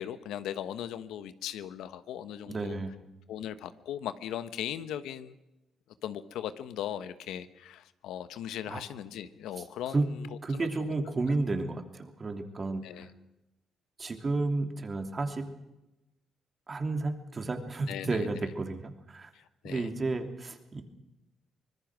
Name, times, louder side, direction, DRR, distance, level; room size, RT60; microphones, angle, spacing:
voice 1, 0.0-2.8 3.3-5.3 6.0-10.3 10.5-10.9 12.8-13.1 17.9-18.3 19.3-19.9, left 10 dB, 85° left, 12 dB, 1.1 m, -38 dB
voice 2, 2.5-3.0 8.7-8.8 9.9-10.0 10.4-12.8 14.0-15.4 16.7-19.3 19.6-20.8, right 3 dB, 35° right, 6 dB, 3.0 m, -32 dB
25.0 x 19.5 x 6.2 m, 0.98 s
cardioid pair, 90°, 0 cm